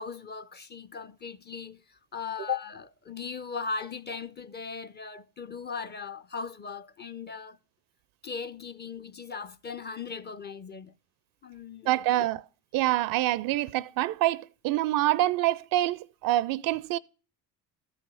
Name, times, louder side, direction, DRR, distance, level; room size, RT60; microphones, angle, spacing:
voice 1, 0.0-7.6 8.2-10.9 11.4-11.9, left 5 dB, 20° left, 0.4 m, -38 dB
voice 2, 11.9-12.4 12.7-17.0, right 15 dB, 45° right, 0.5 m, -26 dB
13.5 x 5.6 x 6.0 m
figure-of-eight pair, 55°, 50 cm